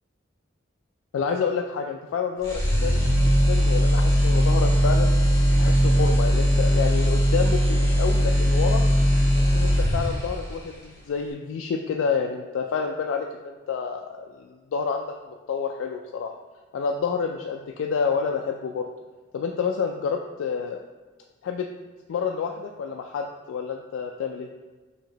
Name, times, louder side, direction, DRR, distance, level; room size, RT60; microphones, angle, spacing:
voice 1, 1.1-5.1 5.6-8.8 9.3-16.3 16.7-18.8 19.3-20.8 21.4-21.7 22.1-24.5, left 6 dB, 85° left, 2 dB, 0.3 m, -29 dB
sound 1, 2.4-10.4, equal, 20° left, 1.3 m, -20 dB
5.9 x 2.8 x 2.9 m, 1.3 s
head